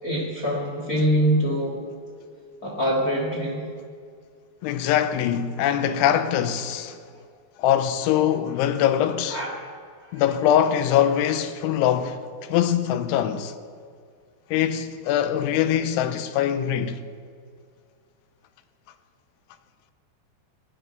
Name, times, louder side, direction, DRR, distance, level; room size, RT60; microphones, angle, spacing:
voice 1, 0.0-1.8 2.6-3.6 9.3-9.7 10.1-10.2, equal, 70° left, 0.8 m, -24 dB
voice 2, 4.6-7.0 7.6-9.4 10.1-13.5 14.5-17.0, left 10 dB, 85° left, 3.1 m, -23 dB
17.5 x 10.0 x 6.6 m
omnidirectional pair, 5.5 m